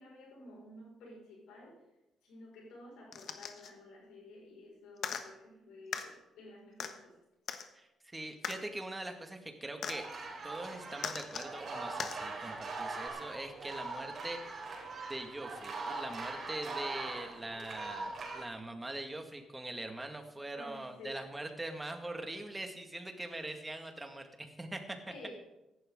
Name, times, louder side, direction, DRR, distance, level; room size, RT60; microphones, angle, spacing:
voice 1, 0.0-1.8 2.2-7.2 20.5-21.2 25.1-25.3, left 2 dB, 90° left, -2 dB, 5.5 m, -52 dB
sound 1, 3.1-3.7 5.0-5.2 5.9-6.1 6.8-6.9 7.5-7.7 8.4-8.6 9.8-10.0 11.0-11.5 12.0-12.2 13.1-13.2, left 7 dB, 60° left, 1.2 m, -38 dB
voice 2, 7.7-10.1 10.4-14.7 15.1-25.0, right 1 dB, 15° right, 5 dB, 1.9 m, -42 dB
sound 2, 9.9-18.4, right 3 dB, 50° right, 3.6 m, -42 dB
15.0 x 11.5 x 3.8 m, 0.92 s
cardioid pair, 90°, 0 cm